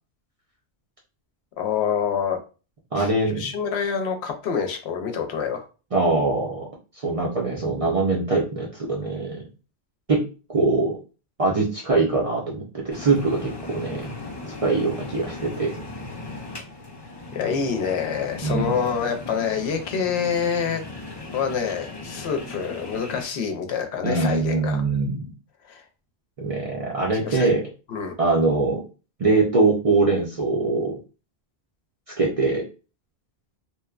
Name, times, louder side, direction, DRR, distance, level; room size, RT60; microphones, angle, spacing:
voice 1, 1.6-2.4 3.0-5.7 17.3-20.8 21.3-24.8 25.7-25.8 27.2-27.5 27.9-28.1, left 6 dB, 75° left, 5 dB, 0.8 m, -26 dB
voice 2, 2.9-3.4 5.9-6.7 7.0-9.4 10.1-11.0 11.4-14.1 14.6-15.7 18.4-18.8 24.0-25.3 26.4-27.6 28.2-28.8 29.2-30.9 32.2-32.6, right 3 dB, 45° right, -2 dB, 0.5 m, -22 dB
sound 1, 12.9-23.2, left 2 dB, 30° left, 0.5 m, -37 dB
2.9 x 2.1 x 2.3 m, 0.34 s
omnidirectional pair, 1.1 m